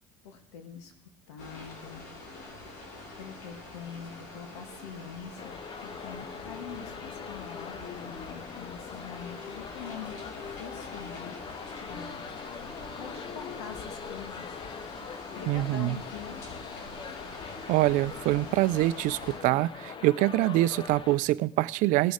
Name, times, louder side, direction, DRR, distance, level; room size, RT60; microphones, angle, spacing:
voice 1, 0.2-0.9 1.3-2.1 3.2-5.5 5.8-11.4 11.8-12.3 12.7-14.6 15.0-16.4, left 7 dB, 90° left, 6 dB, 2.0 m, -44 dB
sound 1, 1.4-19.4, left 2 dB, 70° left, 4.3 m, -45 dB
sound 2, 5.4-21.2, left 5 dB, 35° left, 1.0 m, -42 dB
voice 2, 15.5-16.0 17.7-22.1, right 17 dB, 65° right, 18 dB, 0.5 m, -25 dB
18.0 x 6.3 x 4.9 m, 0.62 s
supercardioid pair, 100°, 14 cm